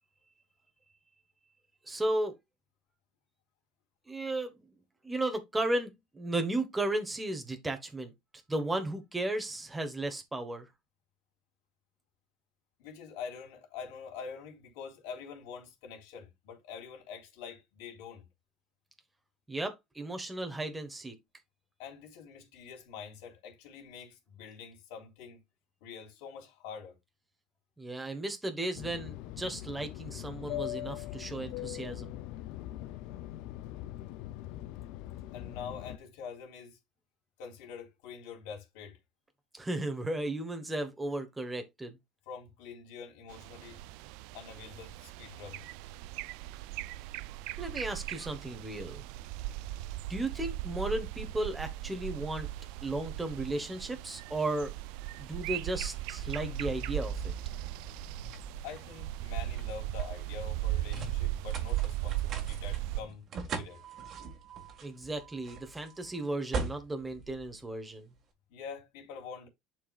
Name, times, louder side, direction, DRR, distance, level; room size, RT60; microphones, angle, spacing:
voice 1, 1.9-2.3 4.1-4.5 5.0-8.1 8.5-10.7 19.5-21.1 27.8-32.2 39.5-42.0 47.6-49.0 50.1-52.5 52.8-54.7 55.2-57.3 64.8-68.1, right 2 dB, 10° right, 1.2 m, -35 dB
voice 2, 12.8-18.3 21.8-25.4 25.8-26.9 35.3-36.8 37.4-39.0 42.3-43.8 44.3-45.6 58.6-63.8 68.5-69.5, left 6 dB, 80° left, 3.5 m, -45 dB
Fixed-wing aircraft airplane, 28.7-36.0, left 15 dB, 65° left, 0.5 m, -41 dB
sound 1, 43.3-63.0, right 15 dB, 75° right, 0.4 m, -38 dB
sound 2, 55.8-68.2, right 3 dB, 35° right, 1.8 m, -42 dB
11.0 x 4.6 x 2.4 m
cardioid pair, 155°, 0 cm